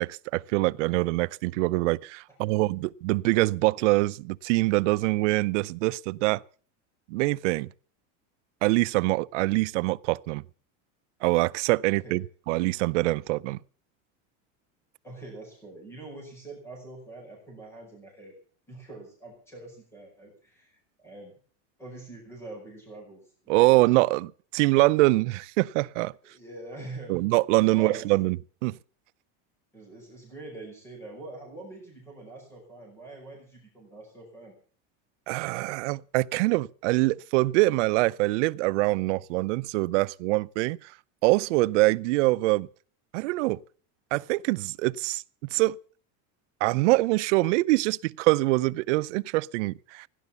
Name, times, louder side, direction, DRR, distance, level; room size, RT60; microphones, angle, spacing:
voice 1, 0.0-6.4 7.1-7.7 8.6-10.4 11.2-13.6 23.5-26.1 27.1-28.4 28.6-28.7 35.3-40.9 41.2-42.7 43.1-43.6 44.1-45.2 45.5-45.8 46.6-50.1, right 21 dB, 75° right, 0.7 m, -24 dB
voice 2, 11.9-12.2 15.0-18.3 18.7-21.3 21.8-23.3 26.2-27.2 27.7-28.1 29.7-34.5, right 2 dB, 5° left, 5.2 m, -44 dB
16.5 x 11.0 x 6.9 m
cardioid pair, 180°, 36 cm